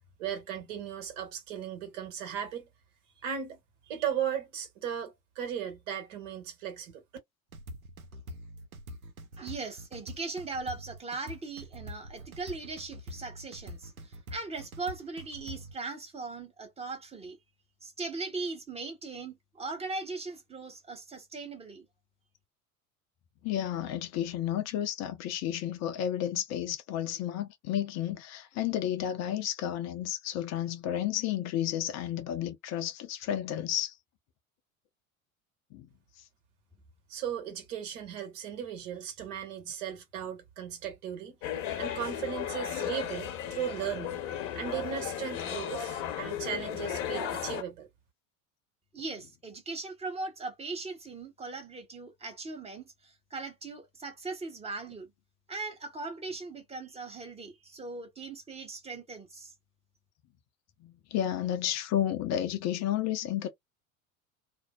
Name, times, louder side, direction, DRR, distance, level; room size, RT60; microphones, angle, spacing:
voice 1, 0.2-2.7 3.2-3.6 3.9-7.0 37.1-41.3 41.8-44.2 44.5-47.9, right 9 dB, 60° right, 1.3 m, -36 dB
sound 1, 7.5-15.8, equal, 85° right, 0.6 m, -45 dB
voice 2, 9.4-17.4 17.8-21.9 48.9-55.1 55.5-59.5, right 3 dB, 15° right, 1.1 m, -39 dB
voice 3, 23.4-33.9 35.7-35.9 60.8-63.5, left 11 dB, 40° left, 0.6 m, -32 dB
sound 2, 41.4-47.6, left 10 dB, 60° left, 0.9 m, -35 dB
2.5 x 2.1 x 2.3 m
figure-of-eight pair, 75°, 42 cm